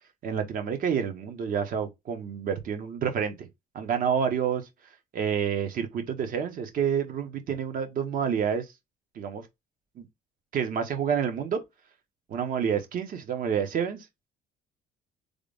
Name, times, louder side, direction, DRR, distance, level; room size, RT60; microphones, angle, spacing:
voice 1, 0.2-3.5 3.7-4.7 5.1-8.6 9.1-9.4 10.0-10.1 10.5-11.6 12.3-14.3, right 7 dB, 55° right, 1.3 m, -28 dB
3.5 x 2.6 x 3.4 m
cardioid pair, 110°, 17 cm